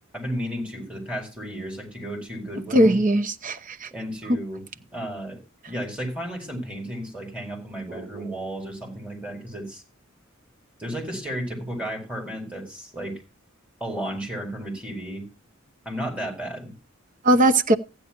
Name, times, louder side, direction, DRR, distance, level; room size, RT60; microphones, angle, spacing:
voice 1, 0.1-3.0 3.9-4.6 4.9-5.4 5.7-9.8 10.8-13.2 13.8-15.2 15.8-16.7, equal, 5° right, 4.5 m, -33 dB
voice 2, 2.7-3.9 7.9-8.2 17.2-17.8, right 1 dB, 40° right, 0.8 m, -20 dB
15.5 x 10.0 x 3.0 m
head